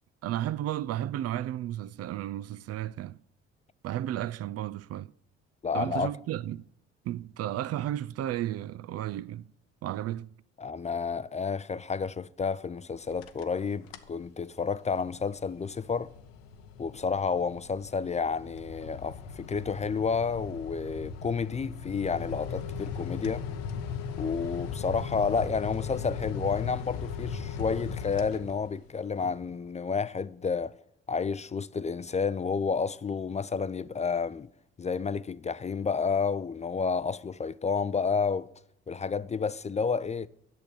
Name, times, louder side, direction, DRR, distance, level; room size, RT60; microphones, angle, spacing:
voice 1, 0.2-3.2 3.8-5.1 5.7-6.7 7.0-9.5 9.8-10.3, right 12 dB, 55° right, 0.4 m, -33 dB
voice 2, 5.6-6.1 10.6-16.1 16.8-23.4 24.2-30.8 31.1-34.5 34.8-38.5 38.9-40.3, left 5 dB, 25° left, 0.4 m, -30 dB
sound 1, 13.0-13.6 13.9-14.2 14.7-28.9, left 6 dB, 90° left, 0.8 m, -38 dB
8.7 x 6.4 x 8.4 m
hypercardioid pair, 55°, 30 cm